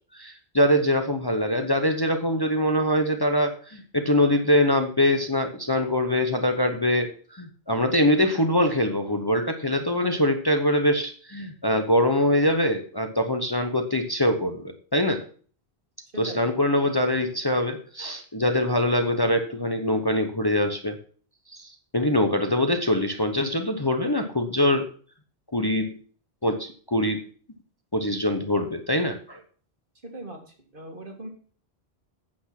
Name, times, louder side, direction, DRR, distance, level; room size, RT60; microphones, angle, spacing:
voice 1, 0.1-15.2 16.2-21.0 21.5-24.9 25.5-25.9 26.4-27.2 27.9-29.4, left 1 dB, 25° left, 6 dB, 0.9 m, -23 dB
voice 2, 16.1-16.5 30.0-31.3, right 1 dB, 55° right, 3 dB, 2.4 m, -40 dB
8.7 x 8.1 x 5.9 m, 0.43 s
omnidirectional pair, 1.1 m